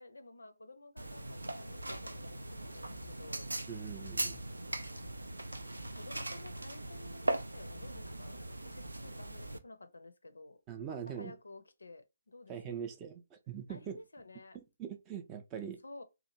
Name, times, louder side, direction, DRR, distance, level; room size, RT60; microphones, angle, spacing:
voice 1, 0.0-3.5 5.9-10.6 10.9-12.8 13.7-14.6 15.8-16.0, left 2 dB, 70° left, 0.5 m, -53 dB
sound 1, 1.0-9.6, right 1 dB, 75° right, 0.4 m, -40 dB
voice 2, 3.7-4.4 10.7-11.3 12.5-14.0 14.5-15.8, right 8 dB, 20° right, 0.4 m, -42 dB
2.8 x 2.4 x 2.7 m
figure-of-eight pair, 140°, 0 cm